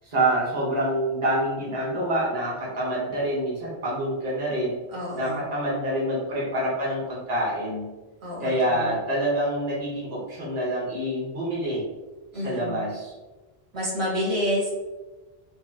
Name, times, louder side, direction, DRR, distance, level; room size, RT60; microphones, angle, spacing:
voice 1, 0.0-4.8 5.2-7.9 8.4-11.8 12.4-13.1, right 1 dB, 40° right, -6 dB, 1.2 m, -26 dB
voice 2, 4.9-5.4 8.2-9.0 12.3-12.8 13.7-14.7, equal, 85° right, -6 dB, 1.7 m, -29 dB
5.4 x 2.1 x 2.8 m, 1.2 s
omnidirectional pair, 1.1 m